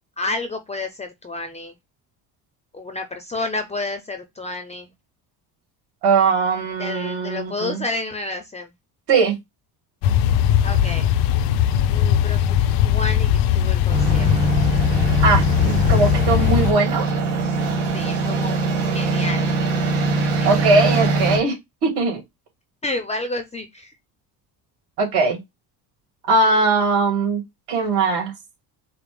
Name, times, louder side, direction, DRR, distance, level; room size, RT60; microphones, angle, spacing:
voice 1, 0.2-1.7 2.7-4.9 6.8-8.7 10.6-11.1 11.9-12.6 12.8-14.5 17.9-19.5 20.4-20.9 22.8-23.9, left 2 dB, 15° left, 0.5 m, -30 dB
voice 2, 6.0-7.8 9.1-9.4 15.2-17.1 20.5-21.5 21.8-22.2 25.0-25.4 26.3-27.4 27.7-28.3, right 4 dB, 70° right, 2.4 m, -20 dB
sound 1, 10.0-16.7, left 10 dB, 80° left, 0.5 m, -19 dB
sound 2, 13.9-21.4, right 3 dB, 85° right, 1.6 m, -22 dB
5.0 x 2.0 x 3.2 m
cardioid pair, 130°, 41 cm